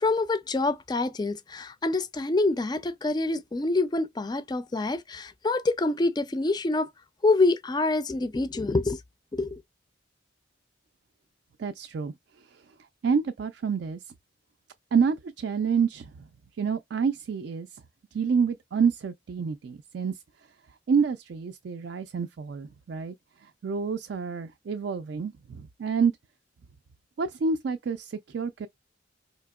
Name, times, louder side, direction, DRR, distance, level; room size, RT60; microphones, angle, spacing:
voice 1, 0.0-6.9 7.2-9.0 9.3-9.6, left 2 dB, 20° left, 0.3 m, -26 dB
voice 2, 11.6-12.1 13.0-14.0 14.9-16.1 16.6-17.8 18.1-20.2 20.9-23.1 23.6-26.1 27.2-28.7, right 6 dB, 65° right, 0.3 m, -28 dB
4.2 x 2.8 x 2.3 m
head